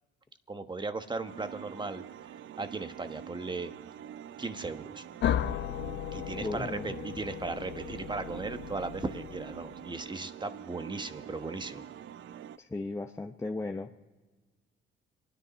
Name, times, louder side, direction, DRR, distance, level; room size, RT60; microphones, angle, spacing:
voice 1, 0.5-2.0 2.6-3.7 4.4-5.0 6.1-11.8, right 3 dB, 20° right, 9 dB, 1.2 m, -37 dB
sound 1, 1.2-12.6, right 10 dB, 75° right, 0.6 m, -45 dB
sound 2, 5.2-9.9, left 10 dB, 65° left, 0.7 m, -35 dB
voice 2, 6.4-6.9 12.6-14.0, left 2 dB, 15° left, 2 dB, 0.8 m, -36 dB
27.0 x 10.0 x 5.3 m, 1.3 s
cardioid pair, 90°, 20 cm